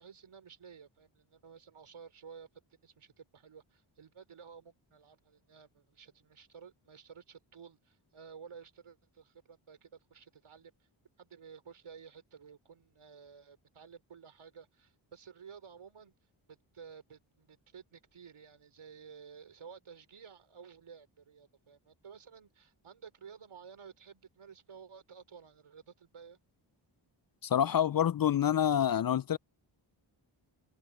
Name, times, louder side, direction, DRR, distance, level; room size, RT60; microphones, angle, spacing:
voice 1, 0.0-2.5 2.8-10.9 11.2-16.1 16.5-26.4, right 6 dB, 75° right, 4.2 m, -53 dB
voice 2, 27.4-29.4, left 10 dB, 45° left, 0.5 m, -27 dB
cardioid pair, 45°, 50 cm